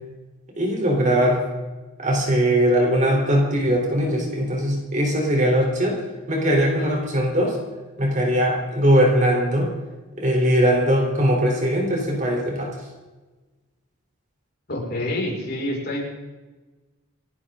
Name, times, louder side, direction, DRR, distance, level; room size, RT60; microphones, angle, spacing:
voice 1, 0.6-1.4 2.0-6.0 6.3-7.6 8.0-9.7 10.2-12.8, equal, 35° right, 0 dB, 3.8 m, -20 dB
voice 2, 14.7-16.0, left 1 dB, 45° left, -3 dB, 5.7 m, -27 dB
29.5 x 10.5 x 3.9 m, 1.2 s
head